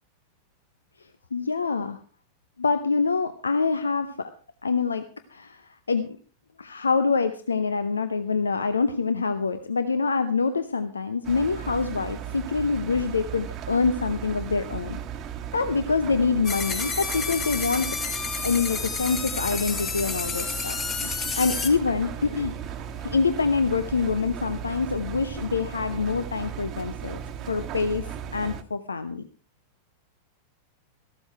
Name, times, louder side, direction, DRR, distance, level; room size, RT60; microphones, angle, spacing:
voice 1, 1.3-2.0 2.6-4.3 4.6-6.1 6.6-15.0 15.5-18.0 18.4-22.5 23.0-27.2 27.5-28.1 28.3-29.2, left 4 dB, 75° left, 11 dB, 0.7 m, -25 dB
Engine, 11.2-28.6, right 9 dB, 35° right, 1.2 m, -36 dB
sound 1, 16.4-21.7, left 5 dB, 25° left, 2.2 m, -30 dB
14.5 x 12.5 x 4.5 m, 0.39 s
figure-of-eight pair, 90°, 0 cm